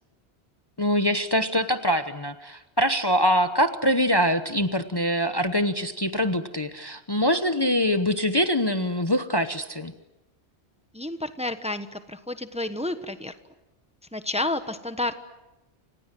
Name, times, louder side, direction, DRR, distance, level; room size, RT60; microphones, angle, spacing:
voice 1, 0.8-9.9, equal, 25° left, 9 dB, 1.0 m, -24 dB
voice 2, 10.9-13.3 14.1-15.2, left 2 dB, 5° right, 10 dB, 1.1 m, -30 dB
29.0 x 26.0 x 7.7 m, 0.98 s
omnidirectional pair, 1.1 m